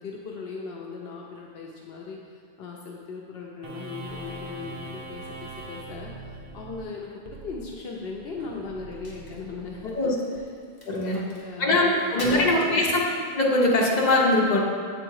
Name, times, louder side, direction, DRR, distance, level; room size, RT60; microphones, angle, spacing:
voice 1, 0.0-10.5 11.1-12.9, left 4 dB, 75° left, -1 dB, 0.8 m, -38 dB
sound 1, 3.6-10.4, right 2 dB, 60° right, 0.9 m, -42 dB
Crack, 8.8-13.5, left 1 dB, 20° left, 1.2 m, -45 dB
voice 2, 10.8-11.2 11.6-13.0 13.3-14.6, left 2 dB, 45° left, -3 dB, 1.0 m, -21 dB
7.8 x 3.5 x 4.7 m, 2.1 s
omnidirectional pair, 1.0 m